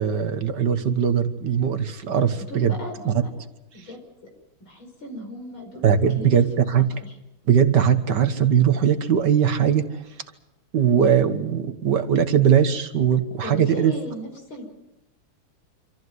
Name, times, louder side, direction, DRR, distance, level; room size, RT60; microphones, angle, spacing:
voice 1, 0.0-2.8 3.1-3.3 5.8-6.9 7.5-9.8 10.7-13.9, right 8 dB, 60° right, 9 dB, 1.8 m, -20 dB
voice 2, 2.5-3.2 3.7-4.0 4.7-5.9 6.1-6.7 7.0-7.1 13.4-14.7, left 1 dB, 80° left, 3 dB, 5.9 m, -36 dB
26.5 x 14.0 x 9.5 m, 0.92 s
omnidirectional pair, 2.2 m